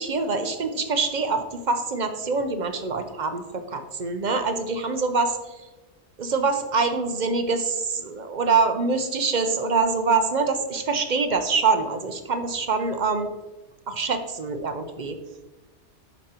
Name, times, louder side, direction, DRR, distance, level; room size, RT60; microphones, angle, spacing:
voice 1, 0.0-5.6 6.2-13.3 13.9-15.2, right 4 dB, 45° right, 7 dB, 0.7 m, -25 dB
11.5 x 5.1 x 2.9 m, 1.1 s
omnidirectional pair, 1.2 m